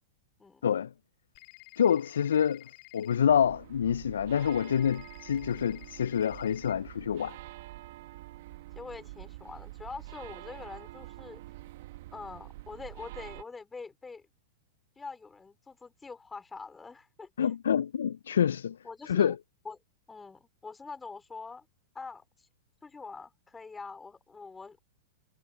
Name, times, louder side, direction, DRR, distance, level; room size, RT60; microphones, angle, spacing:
sound 1, 1.3-3.2 4.4-6.7, left 40 dB or more, 50° left, 4.8 m, -52 dB
voice 1, 1.8-2.7 2.9-7.4 17.4-18.8 19.0-19.4, left 8 dB, 75° left, 0.5 m, -27 dB
sound 2, 3.3-13.4, right 17 dB, 60° right, 1.6 m, -47 dB
voice 2, 8.8-11.4 12.1-14.2 15.0-17.5 18.8-19.4 19.6-19.8 20.1-21.7 21.9-22.5 22.8-24.8, left 4 dB, 15° left, 3.8 m, -44 dB
hypercardioid pair, 100°, 0 cm